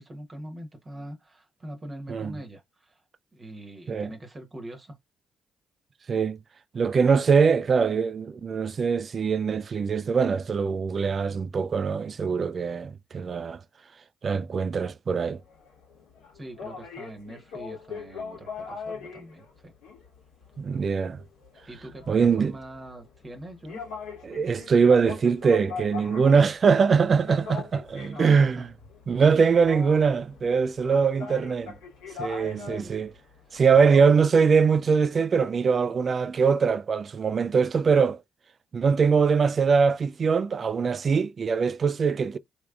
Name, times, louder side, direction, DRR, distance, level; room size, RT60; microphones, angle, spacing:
voice 1, 0.0-3.0 3.3-5.0 16.3-19.7 21.6-23.8 27.9-28.7 32.4-32.9 33.5-33.7, right 1 dB, 35° right, 1.0 m, -43 dB
voice 2, 6.1-6.4 6.7-13.6 14.2-15.4 20.6-21.2 22.1-22.5 24.2-28.7 29.1-31.7 32.2-33.1 33.5-38.2 38.7-42.4, right 5 dB, 50° right, 0.3 m, -22 dB
sound 1, 15.1-34.1, left 5 dB, 85° left, 1.3 m, -41 dB
3.4 x 3.0 x 2.4 m
hypercardioid pair, 55°, 0 cm